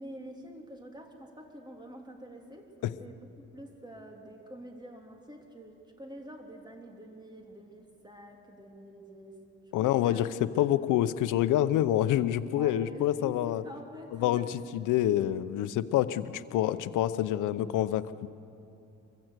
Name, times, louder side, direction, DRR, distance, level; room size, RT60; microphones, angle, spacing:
voice 1, 0.0-9.4 9.8-10.3 12.5-14.5, equal, 15° right, 2 dB, 3.2 m, -47 dB
voice 2, 9.7-13.6 14.2-14.4 14.7-18.3, left 12 dB, 90° left, 13 dB, 0.8 m, -27 dB
24.0 x 15.5 x 8.2 m, 2.7 s
cardioid pair, 90°, 30 cm